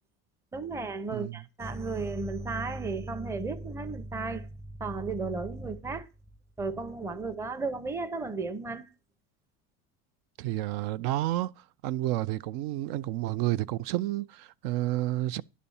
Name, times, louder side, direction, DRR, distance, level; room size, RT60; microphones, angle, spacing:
voice 1, 0.5-6.1 6.6-8.9, right 3 dB, 10° right, 0.6 m, -34 dB
voice 2, 10.4-11.5 11.8-15.4, right 15 dB, 70° right, 0.5 m, -30 dB
11.0 x 4.2 x 7.0 m
cardioid pair, 150°, 37 cm